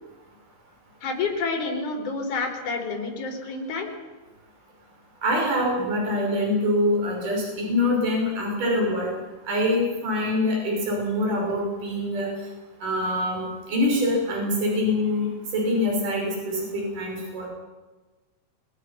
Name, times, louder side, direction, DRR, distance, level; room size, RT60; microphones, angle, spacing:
voice 1, 1.0-3.9, left 4 dB, 60° left, 1 dB, 5.1 m, -29 dB
voice 2, 5.2-9.2 9.4-12.3 12.8-15.3 15.5-17.5, left 1 dB, 65° right, -1 dB, 7.4 m, -24 dB
24.0 x 21.0 x 5.9 m, 1.2 s
omnidirectional pair, 4.0 m